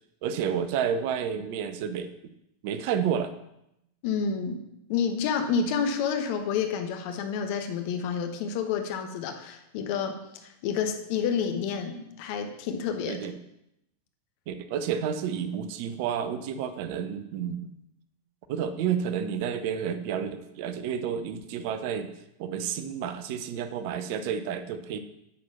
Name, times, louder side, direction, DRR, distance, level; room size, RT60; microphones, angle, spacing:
voice 1, 0.2-2.1 2.6-3.3 13.1-13.4 14.5-17.7 18.5-22.1 22.4-25.0, right 8 dB, 45° right, 11 dB, 0.6 m, -30 dB
voice 2, 4.0-4.6 4.9-13.2, left 6 dB, 45° left, 6 dB, 1.0 m, -29 dB
8.4 x 4.5 x 5.9 m, 0.83 s
figure-of-eight pair, 90°, 0 cm